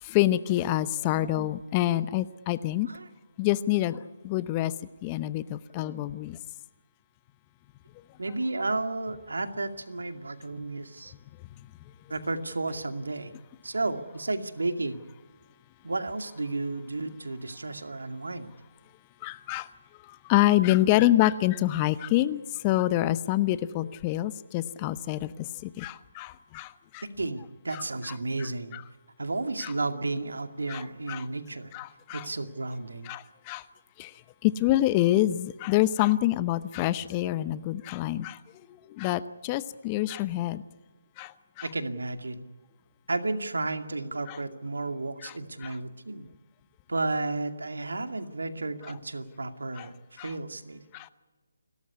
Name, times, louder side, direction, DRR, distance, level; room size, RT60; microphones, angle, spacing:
voice 1, 0.0-2.9 3.4-4.7 5.0-6.4 11.6-11.7 19.2-19.7 20.0-27.0 27.7-27.8 28.4-28.8 29.6-29.7 30.7-31.3 31.7-32.3 33.0-33.6 34.0-34.1 34.4-38.4 38.7-40.6 41.2-41.7 44.3-44.4 45.2-45.3 45.6-45.8 49.8-49.9 50.2-50.3 50.9-51.1, left 15 dB, 25° left, 15 dB, 0.8 m, -27 dB
voice 2, 8.2-11.1 12.1-13.3 13.6-15.0 15.8-18.5 27.2-28.7 29.2-31.7 32.1-33.1 41.6-42.5 43.1-46.4 46.9-50.8, right 2 dB, 80° right, 8 dB, 2.3 m, -32 dB
29.5 x 13.5 x 9.7 m, 1.3 s
figure-of-eight pair, 150°, 0 cm